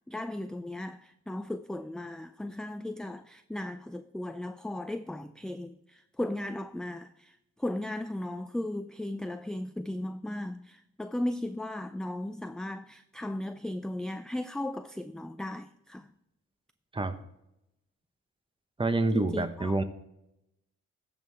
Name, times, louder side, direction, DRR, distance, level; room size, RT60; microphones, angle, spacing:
voice 1, 0.1-7.3 7.6-16.1 19.1-19.8, left 1 dB, ahead, 0.3 m, -36 dB
voice 2, 18.8-19.8, right 2 dB, 15° right, 0.9 m, -27 dB
14.5 x 5.6 x 3.3 m
cardioid pair, 90°, 30 cm